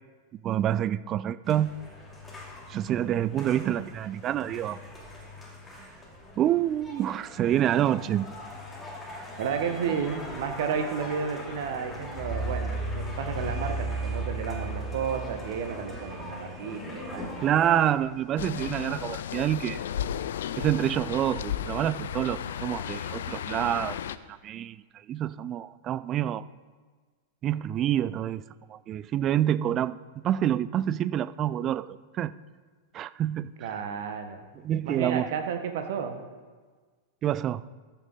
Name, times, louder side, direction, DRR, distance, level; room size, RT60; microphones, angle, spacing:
voice 1, 0.4-1.7 2.7-4.8 6.4-8.3 17.4-19.8 20.6-24.0 24.3-24.8 25.1-26.4 27.4-28.4 28.7-30.0 30.2-32.3 32.9-33.7 34.6-35.3 37.2-37.6, right 11 dB, 35° right, 17 dB, 0.3 m, -27 dB
sound 1, 1.5-17.9, right 1 dB, 10° left, 2.6 m, -38 dB
voice 2, 9.4-17.8 33.6-34.4 34.8-36.2, right 7 dB, 60° right, 7 dB, 1.2 m, -32 dB
sound 2, 13.1-22.8, right 1 dB, 5° right, 2.8 m, -48 dB
sound 3, 18.4-24.2, left 9 dB, 65° left, 0.4 m, -34 dB
14.0 x 6.2 x 4.1 m, 1.4 s
figure-of-eight pair, 95°, 0 cm